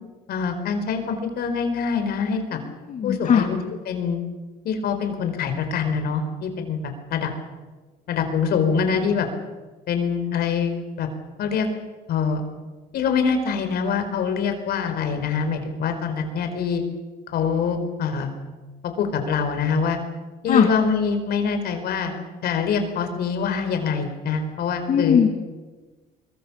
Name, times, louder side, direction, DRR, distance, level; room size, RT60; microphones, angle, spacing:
voice 1, 0.3-2.6 3.0-3.6 3.9-4.2 4.6-7.3 8.1-9.3 9.9-10.7 11.0-11.1 11.4-11.7 12.1-12.4 12.9-16.8 17.3-18.3 18.8-20.0 20.4-22.1 22.4-25.2, left 6 dB, 70° left, 7 dB, 4.7 m, -24 dB
voice 2, 2.5-3.5 20.5-20.7 24.9-25.3, left 7 dB, 50° left, 3 dB, 2.1 m, -20 dB
24.5 x 23.0 x 7.3 m, 1.3 s
cardioid pair, 110°, 17 cm